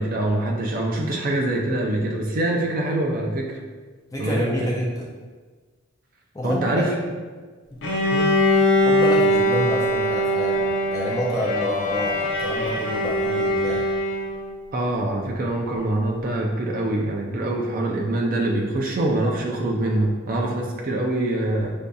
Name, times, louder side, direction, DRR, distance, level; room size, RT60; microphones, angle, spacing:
voice 1, 0.0-3.5 4.2-4.7 6.4-6.9 8.0-8.3 14.7-21.7, right 1 dB, 45° right, -1 dB, 0.4 m, -24 dB
voice 2, 4.1-5.1 6.3-6.7 8.8-13.8, equal, 15° left, -3 dB, 0.5 m, -28 dB
Bowed string instrument, 7.8-14.6, left 1 dB, 75° left, 0.7 m, -22 dB
6.6 x 2.6 x 2.3 m, 1.4 s
head